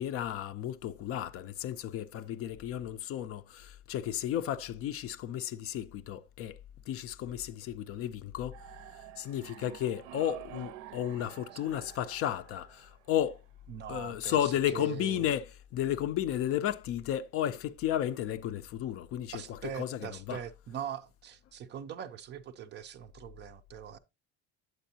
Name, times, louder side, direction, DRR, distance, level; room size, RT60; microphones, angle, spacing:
voice 1, 0.0-6.6 6.9-8.5 9.2-13.4 13.9-20.4, left 11 dB, 45° left, 0.5 m, -33 dB
sound 1, 8.5-13.5, right 14 dB, 70° right, 0.7 m, -48 dB
voice 2, 13.7-15.2 19.3-24.0, right 9 dB, 35° right, 0.5 m, -42 dB
9.1 x 8.0 x 2.7 m
cardioid pair, 170°, 32 cm